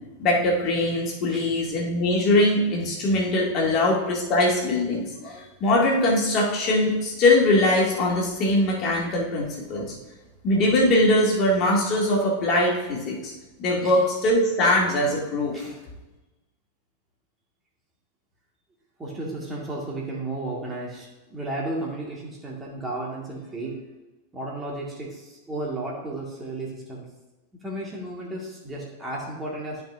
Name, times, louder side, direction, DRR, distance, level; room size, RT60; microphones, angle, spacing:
voice 1, 0.2-9.9 10.4-13.3 13.6-15.6, left 1 dB, 35° left, -2 dB, 2.2 m, -22 dB
voice 2, 19.0-23.8 24.3-27.1 27.6-29.8, right 2 dB, 15° right, -3 dB, 1.9 m, -33 dB
12.5 x 5.3 x 2.6 m, 1.1 s
figure-of-eight pair, 90°, 0 cm